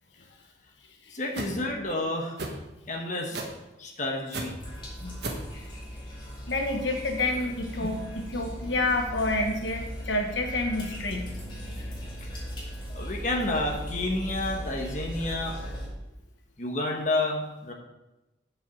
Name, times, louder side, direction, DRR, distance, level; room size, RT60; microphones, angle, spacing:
voice 1, 1.1-2.5 2.9-3.4 3.8-4.6 12.2-12.3 12.9-15.6 16.6-17.7, left 2 dB, 40° left, 1 dB, 1.2 m, -30 dB
sound 1, 1.3-1.5 2.4-2.6 3.3-3.6 4.3-4.5 5.2-5.5, right 3 dB, 65° right, 1.4 m, -33 dB
sound 2, 4.6-15.9, equal, 25° left, 2.4 m, -38 dB
voice 2, 6.5-11.3, left 2 dB, 85° left, 3 dB, 1.4 m, -29 dB
7.7 x 5.6 x 7.1 m, 0.99 s
head